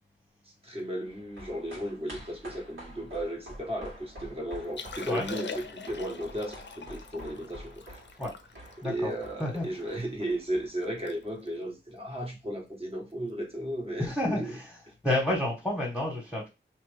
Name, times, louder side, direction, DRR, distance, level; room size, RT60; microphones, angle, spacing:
voice 1, 0.6-8.0 8.8-14.5, right 1 dB, 30° right, 1.3 m, -35 dB
sound 1, 1.0-11.6 11.9-12.0, equal, 75° right, 2.0 m, -48 dB
Liquid, 4.6-10.0 10.5-10.6 10.8-11.2 11.4-11.7 12.3-12.5 14.0-14.1, left 5 dB, 65° left, 0.5 m, -43 dB
voice 2, 14.0-14.7 15.0-16.5, left 1 dB, ahead, 1.4 m, -29 dB
3.0 x 2.8 x 3.4 m
wide cardioid pair, 75°, 20 cm